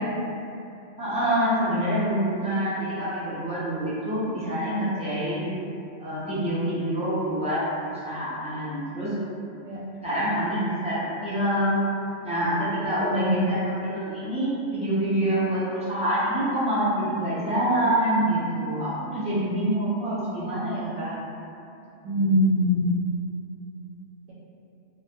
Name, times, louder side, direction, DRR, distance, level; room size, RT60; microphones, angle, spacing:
voice 1, 1.0-5.5 6.0-9.2 10.0-11.8 12.2-21.2, right 1 dB, 10° right, -13 dB, 0.4 m, -26 dB
voice 2, 12.9-13.5 22.0-23.0, left 1 dB, 80° right, -9 dB, 0.9 m, -23 dB
2.3 x 2.2 x 2.8 m, 2.7 s
omnidirectional pair, 1.2 m